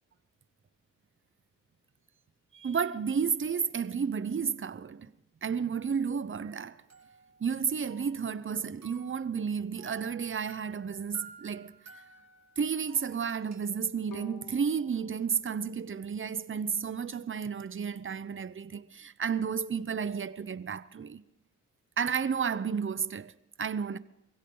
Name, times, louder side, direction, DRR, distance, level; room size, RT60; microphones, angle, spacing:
voice 1, 2.5-5.1 5.4-6.8 7.4-11.7 12.6-21.2 22.0-23.3 23.6-24.0, right 6 dB, 40° right, 0.8 m, -32 dB
sound 1, 6.4-7.6 7.9-9.3 9.8-13.7, right 6 dB, 55° right, 4.0 m, -54 dB
Bowed string instrument, 14.1-17.2, left 5 dB, 80° left, 2.3 m, -54 dB
23.0 x 16.5 x 3.9 m
cardioid pair, 70°, 33 cm